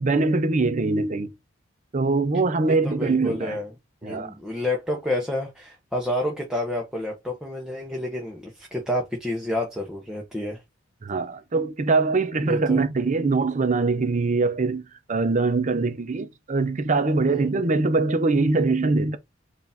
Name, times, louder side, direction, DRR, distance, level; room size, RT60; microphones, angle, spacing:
voice 1, 0.0-1.3 1.9-3.6 4.0-4.3 11.0-14.8 15.1-19.2, right 3 dB, 40° right, 0.6 m, -23 dB
voice 2, 2.7-3.7 4.0-10.6 12.4-12.8 17.3-17.5, left 1 dB, 5° right, 0.8 m, -29 dB
4.7 x 2.6 x 3.4 m
head